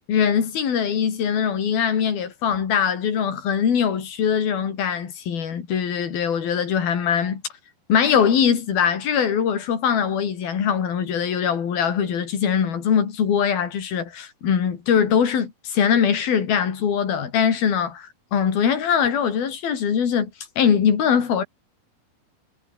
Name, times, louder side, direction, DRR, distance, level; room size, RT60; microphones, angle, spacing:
voice 1, 0.1-7.4 7.9-20.3 20.6-21.4, left 7 dB, 70° left, 5.2 m, -22 dB
omnidirectional pair, 4.4 m